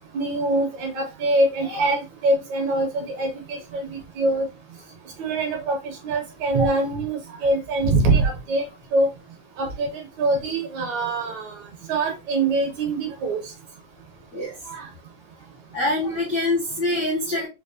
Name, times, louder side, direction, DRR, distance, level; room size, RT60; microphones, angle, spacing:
voice 1, 0.1-4.5 5.2-8.6 8.9-9.1 9.6-11.6 11.9-13.4 14.7-14.9, right 2 dB, 70° right, 2 dB, 1.9 m, -24 dB
voice 2, 15.7-17.5, left 2 dB, 75° left, -3 dB, 0.9 m, -24 dB
5.3 x 2.1 x 2.5 m, 0.26 s
omnidirectional pair, 3.8 m